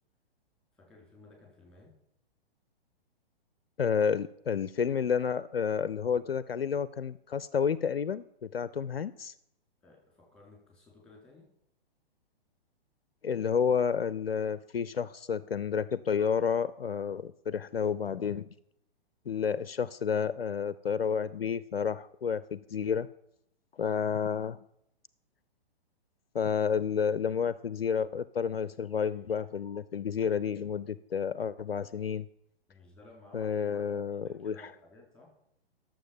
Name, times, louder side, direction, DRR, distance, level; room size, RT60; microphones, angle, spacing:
voice 1, 0.7-1.9 9.8-11.5 32.7-35.3, left 2 dB, 5° left, -1 dB, 4.3 m, -56 dB
voice 2, 3.8-9.3 13.2-18.5 19.3-23.1 23.8-24.6 26.3-32.3 33.3-34.6, left 7 dB, 70° left, 17 dB, 0.6 m, -30 dB
12.0 x 7.2 x 7.4 m, 0.75 s
figure-of-eight pair, 120°, 30 cm